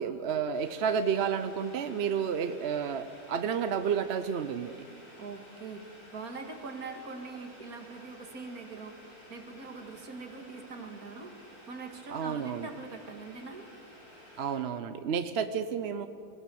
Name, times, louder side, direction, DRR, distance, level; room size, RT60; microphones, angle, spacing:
voice 1, 0.0-4.8 12.1-12.7 14.4-16.1, right 7 dB, 55° right, 10 dB, 0.8 m, -31 dB
Boiling, 0.5-14.6, equal, 85° left, 8.2 m, -53 dB
voice 2, 5.2-13.7, right 4 dB, 75° right, 5 dB, 2.4 m, -43 dB
23.0 x 16.5 x 7.7 m, 2.3 s
omnidirectional pair, 1.5 m